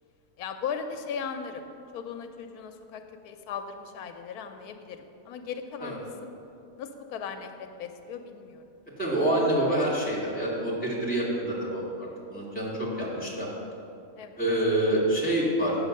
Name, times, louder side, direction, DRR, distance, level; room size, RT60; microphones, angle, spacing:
voice 1, 0.4-1.7 1.9-5.0 5.3-6.3 6.8-8.6 14.2-14.4, left 6 dB, 85° left, 7 dB, 1.1 m, -37 dB
voice 2, 9.0-13.5 14.4-15.8, right 1 dB, 5° left, -5 dB, 2.2 m, -27 dB
8.2 x 6.6 x 6.4 m, 2.6 s
omnidirectional pair, 1.6 m